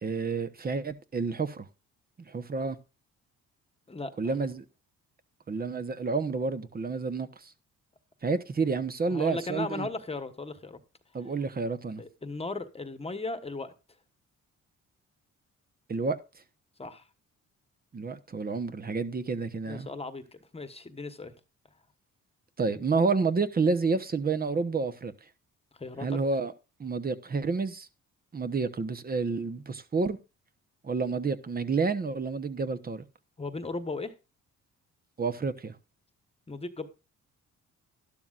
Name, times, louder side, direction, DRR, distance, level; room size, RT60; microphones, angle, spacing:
voice 1, 0.0-1.7 2.3-2.8 4.2-4.6 5.5-7.5 8.2-9.9 11.1-12.0 15.9-16.2 17.9-19.9 22.6-25.1 26.0-26.5 26.8-27.9 28.3-30.2 30.8-33.0 35.2-35.7, right 4 dB, 30° right, 1.0 m, -29 dB
voice 2, 9.0-10.8 12.0-13.7 16.8-17.0 19.7-21.3 25.7-26.2 33.4-34.1 36.5-36.9, left 3 dB, 20° left, 1.3 m, -36 dB
12.5 x 12.0 x 2.5 m
cardioid pair, 90°, 30 cm